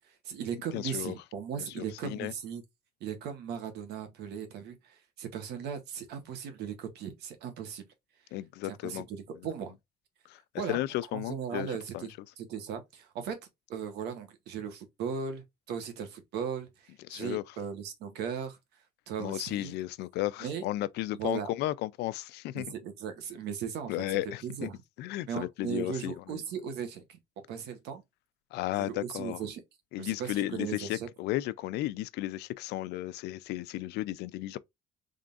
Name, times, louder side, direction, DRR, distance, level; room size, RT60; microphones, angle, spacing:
voice 1, 0.1-2.6 3.0-7.8 8.6-9.7 10.6-10.8 11.1-13.4 13.7-18.6 19.1-19.7 20.4-20.6 21.1-21.5 22.5-24.8 25.3-27.2 27.5-28.0 28.8-29.6 30.0-31.1, right 7 dB, 80° right, 1.4 m, -37 dB
voice 2, 0.7-1.1 1.8-2.3 8.3-9.0 10.3-10.4 10.7-11.7 11.9-12.1 17.1-17.4 19.2-22.7 23.9-24.7 25.0-26.4 28.5-29.4 29.9-34.6, left 16 dB, 85° left, 0.4 m, -34 dB
3.8 x 3.4 x 2.5 m
cardioid pair, 140°, 17 cm